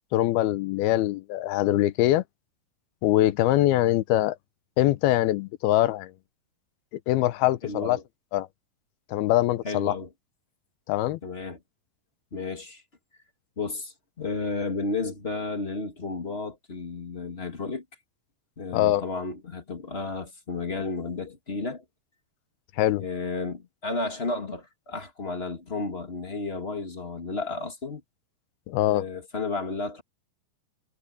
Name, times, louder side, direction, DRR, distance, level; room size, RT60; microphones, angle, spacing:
voice 1, 0.1-2.2 3.0-4.4 4.8-6.1 7.1-8.0 8.3-8.5 9.1-9.9 10.9-11.2 18.7-19.0 22.8-23.1 28.7-29.1, left 15 dB, 85° left, 2.8 m, -23 dB
voice 2, 7.6-8.0 9.6-10.1 11.2-11.6 12.3-12.8 13.6-17.8 18.6-21.8 23.0-28.0 28.9-30.0, left 3 dB, 30° left, 1.2 m, -32 dB
omnidirectional pair, 4.4 m